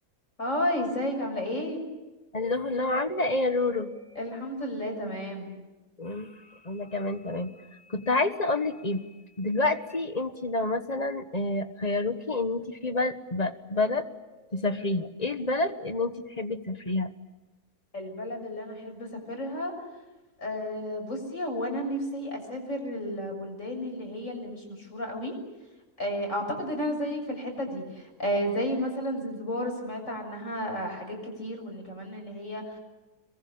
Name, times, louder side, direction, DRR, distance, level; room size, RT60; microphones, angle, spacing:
voice 1, 0.4-1.8 4.2-5.5 17.9-19.7 20.4-25.3 26.0-32.8, equal, 55° left, 3 dB, 7.1 m, -32 dB
voice 2, 2.3-4.0 6.0-6.3 6.6-7.5 7.9-9.0 9.4-14.1 14.5-17.1, left 2 dB, 25° left, 10 dB, 1.4 m, -28 dB
27.5 x 22.5 x 8.8 m, 1.1 s
omnidirectional pair, 1.6 m